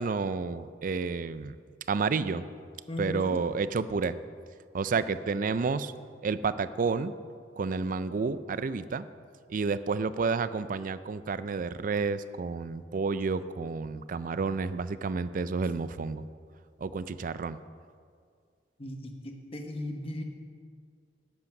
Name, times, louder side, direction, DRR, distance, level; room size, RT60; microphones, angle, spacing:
voice 1, 0.0-1.6 1.9-2.4 3.0-4.1 4.7-5.9 6.2-7.1 7.6-9.0 9.5-16.2 16.8-17.6, right 4 dB, 50° right, 14 dB, 0.4 m, -30 dB
voice 2, 2.9-3.4 18.8-19.0 19.2-20.2, left 1 dB, 35° left, 4 dB, 1.1 m, -36 dB
10.5 x 8.4 x 5.9 m, 2.1 s
head